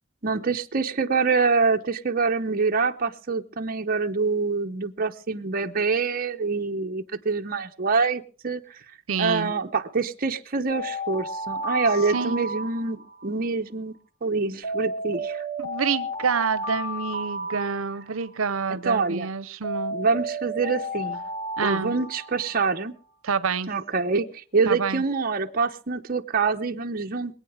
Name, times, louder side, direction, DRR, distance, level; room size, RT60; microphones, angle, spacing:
voice 1, 0.2-8.6 9.2-15.4 18.7-19.3 19.9-21.2 21.6-22.9 23.7-27.4, right 4 dB, 45° right, 5 dB, 0.8 m, -25 dB
voice 2, 9.1-9.5 12.1-12.4 15.6-20.0 21.6-22.0 23.2-23.7 24.7-25.0, right 5 dB, 75° right, 16 dB, 0.8 m, -27 dB
Alarm, 10.7-13.3 14.6-18.3 19.6-22.8, equal, 50° left, 7.3 m, -32 dB
23.0 x 8.8 x 4.9 m, 0.39 s
head